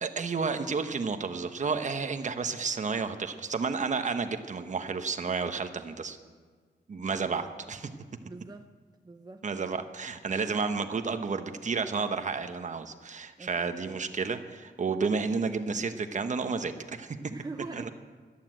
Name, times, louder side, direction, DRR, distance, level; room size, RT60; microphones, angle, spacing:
voice 1, 0.0-6.2 6.9-7.9 9.4-17.2 17.7-17.9, right 5 dB, 45° right, 8 dB, 1.0 m, -31 dB
voice 2, 8.2-8.7 9.0-9.9 13.4-13.8 17.3-17.9, right 3 dB, 20° right, 6 dB, 0.7 m, -44 dB
14.0 x 11.5 x 9.0 m, 1.5 s
wide cardioid pair, 125°, 18 cm